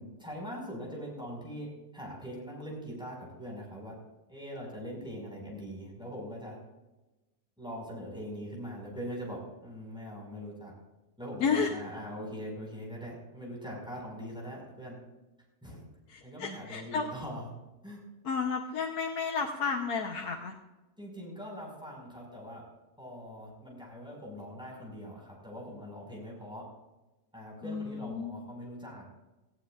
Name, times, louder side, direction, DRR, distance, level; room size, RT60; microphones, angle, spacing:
voice 1, 0.0-3.9 4.3-6.6 7.6-10.7 11.2-15.0 15.6-15.8 16.2-17.6 17.8-18.0 21.0-22.6 23.0-26.7 27.3-29.1, equal, 5° right, -3 dB, 5.6 m, -42 dB
voice 2, 11.4-11.7 16.1-17.1 18.2-20.5 27.6-28.4, left 5 dB, 70° left, 1 dB, 1.6 m, -32 dB
19.0 x 15.0 x 2.5 m, 1.1 s
omnidirectional pair, 1.8 m